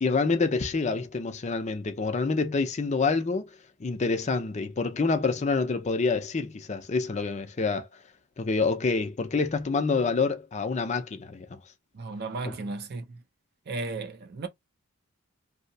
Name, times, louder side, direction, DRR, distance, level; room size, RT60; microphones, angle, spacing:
voice 1, 0.0-3.5 3.8-7.9 8.4-11.6, left 4 dB, 30° left, 0.4 m, -27 dB
voice 2, 11.9-13.2 13.7-14.5, right 3 dB, 45° right, 0.5 m, -34 dB
2.7 x 2.0 x 2.6 m
head